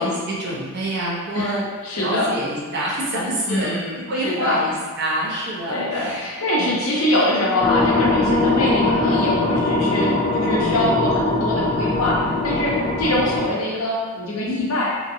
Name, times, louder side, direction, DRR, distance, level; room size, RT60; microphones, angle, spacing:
voice 1, 0.0-1.6 1.9-3.7 4.1-6.2 6.6-6.7 13.0-13.2, right 1 dB, 50° right, -5 dB, 0.7 m, -26 dB
voice 2, 1.8-2.3 3.5-4.6 5.7-14.9, left 1 dB, 85° left, -4 dB, 0.7 m, -23 dB
sound 1, 7.6-13.4, left 2 dB, 30° left, 0.3 m, -21 dB
2.8 x 2.6 x 2.7 m, 1.5 s
head